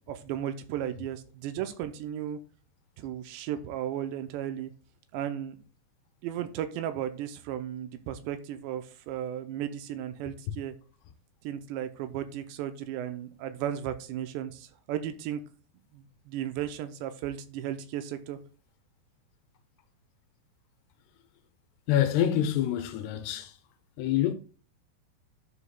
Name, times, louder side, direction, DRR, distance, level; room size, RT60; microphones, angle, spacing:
voice 1, 0.1-2.4 3.0-4.7 5.1-5.6 6.2-10.7 11.4-15.4 15.9-18.4, right 10 dB, 85° right, 2.8 m, -35 dB
voice 2, 21.9-23.6 24.0-24.3, left 11 dB, 80° left, 2.6 m, -26 dB
12.0 x 5.0 x 2.3 m
omnidirectional pair, 5.0 m